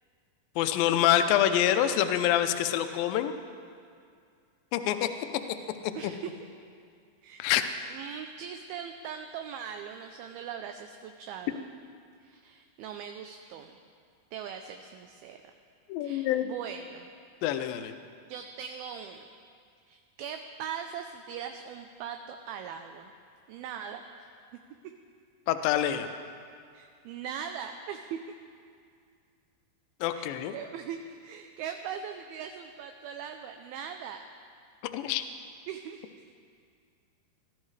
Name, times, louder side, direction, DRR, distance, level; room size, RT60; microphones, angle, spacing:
voice 1, 0.6-3.3 4.7-5.1 7.4-7.6 15.9-16.5 17.4-18.0 25.5-26.1 30.0-30.5 34.9-35.2, left 11 dB, 80° left, 8 dB, 2.1 m, -26 dB
voice 2, 6.0-6.5 7.2-7.5 7.9-11.7 12.2-13.8 14.3-15.4 16.0-17.1 18.2-19.3 19.9-23.1 23.5-24.3 26.7-28.2 30.1-34.2 35.7-36.0, right 8 dB, 80° right, 6 dB, 2.3 m, -40 dB
18.5 x 13.5 x 3.2 m, 2.3 s
omnidirectional pair, 4.7 m